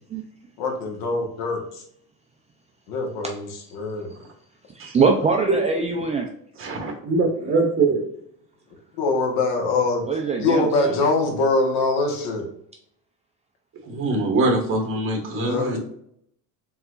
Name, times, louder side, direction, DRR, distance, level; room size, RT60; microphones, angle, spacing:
voice 1, 0.6-1.6 2.9-4.1 9.0-10.0 10.4-12.5 15.3-15.8, left 3 dB, 85° left, 2 dB, 1.4 m, -23 dB
voice 2, 4.9-6.3 10.0-11.0, right 4 dB, 20° right, 1 dB, 0.3 m, -22 dB
voice 3, 6.6-8.0 13.8-15.8, right 3 dB, 35° right, 1 dB, 1.5 m, -23 dB
4.6 x 3.9 x 2.4 m, 0.70 s
cardioid pair, 150°, 35 cm